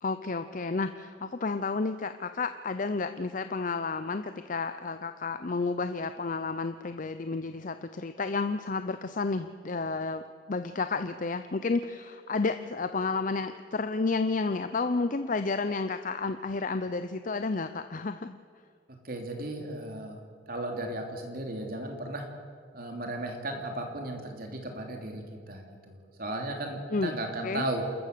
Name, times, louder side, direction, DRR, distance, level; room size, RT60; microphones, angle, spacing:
voice 1, 0.0-18.4 26.9-27.1 27.4-27.6, left 3 dB, 45° left, 10 dB, 0.6 m, -31 dB
voice 2, 19.0-20.2 20.5-22.3 22.7-27.8, right 1 dB, 50° right, 3 dB, 3.1 m, -35 dB
27.5 x 14.5 x 6.8 m, 2.1 s
head